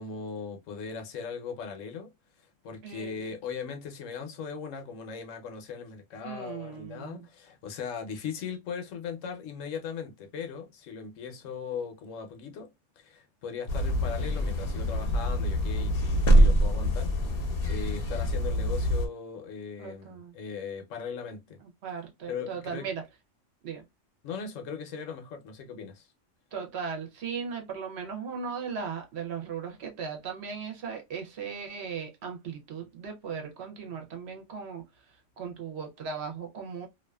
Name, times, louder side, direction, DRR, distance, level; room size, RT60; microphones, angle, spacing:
voice 1, 0.0-2.1 2.6-17.4 17.7-21.6 22.3-22.9 24.2-26.1, left 6 dB, 85° left, 1.1 m, -38 dB
voice 2, 2.8-3.3 6.2-7.3 19.8-20.3 21.6-23.0 23.6-23.8 26.5-34.8 35.4-36.9, right 6 dB, 60° right, 0.9 m, -37 dB
sound 1, 13.7-19.1, equal, 55° left, 0.8 m, -25 dB
2.6 x 2.4 x 2.2 m
omnidirectional pair, 1.3 m